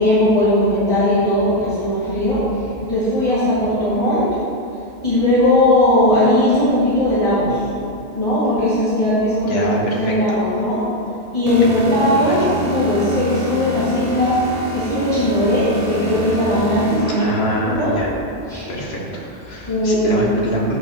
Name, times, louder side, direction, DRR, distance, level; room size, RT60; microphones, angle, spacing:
voice 1, 0.0-4.3 5.0-7.7 8.1-9.7 10.0-10.8 11.3-14.4 14.7-17.9 18.5-18.7 19.7-20.5, left 1 dB, 30° left, -13 dB, 2.0 m, -18 dB
voice 2, 9.4-10.4 12.0-12.5 17.2-18.1 18.7-19.0 19.3-20.8, equal, 70° left, -3 dB, 1.6 m, -25 dB
sound 1, 11.5-17.9, left 2 dB, 40° right, 1.2 m, -28 dB
13.5 x 5.3 x 2.8 m, 2.5 s
omnidirectional pair, 1.1 m